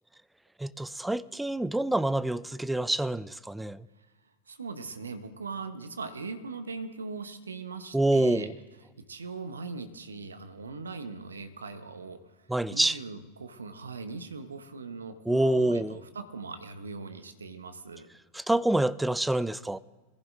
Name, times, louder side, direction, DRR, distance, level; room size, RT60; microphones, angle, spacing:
voice 1, 0.6-3.8 7.9-8.5 12.5-13.0 15.3-16.0 18.5-19.8, right 1 dB, 5° right, 0.4 m, -26 dB
voice 2, 4.5-8.5 8.8-12.2 12.7-18.1, right 4 dB, 75° right, 0.9 m, -40 dB
22.0 x 15.5 x 2.6 m
figure-of-eight pair, 90°, 0 cm